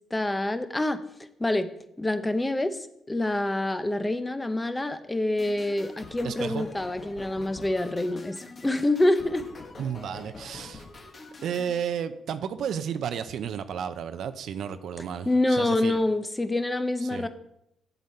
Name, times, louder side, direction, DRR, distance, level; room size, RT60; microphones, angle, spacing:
voice 1, 0.1-1.0 1.4-1.7 2.0-9.4 15.2-17.3, left 1 dB, 15° left, 11 dB, 0.7 m, -26 dB
sound 1, 5.4-11.7, left 3 dB, 40° left, 1.5 m, -45 dB
voice 2, 6.2-6.6 9.8-10.8 11.4-16.0 17.0-17.3, right 8 dB, 70° right, 11 dB, 0.6 m, -32 dB
8.1 x 8.0 x 4.3 m, 0.79 s
cardioid pair, 90°, 0 cm